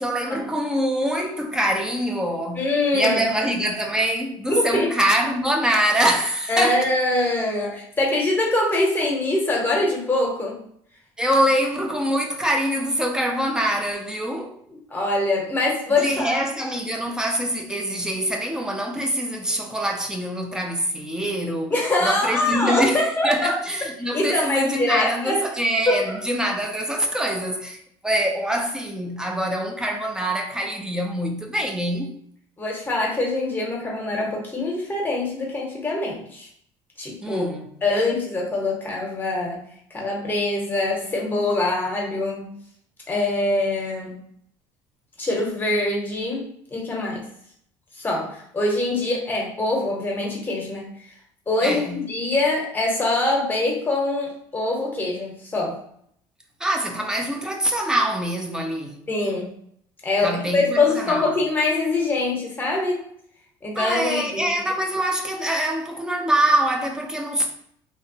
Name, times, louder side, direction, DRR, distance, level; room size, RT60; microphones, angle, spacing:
voice 1, 0.0-2.7 2.9-6.9 11.2-14.5 16.0-21.7 22.0-32.1 37.2-37.7 51.6-52.0 56.6-59.0 60.2-61.3 63.8-67.5, right 1 dB, 5° right, 0.4 m, -24 dB
voice 2, 2.5-3.2 4.5-4.9 6.5-10.6 14.9-16.4 21.7-23.5 24.1-25.4 25.9-26.1 32.6-36.5 37.0-37.4 37.8-39.6 39.9-42.5 43.1-44.2 45.2-47.2 48.0-50.9 51.5-55.8 59.1-59.5 60.0-63.0 63.6-64.6, left 2 dB, 20° left, 0.8 m, -24 dB
2.8 x 2.2 x 2.7 m
cardioid pair, 115°, 10 cm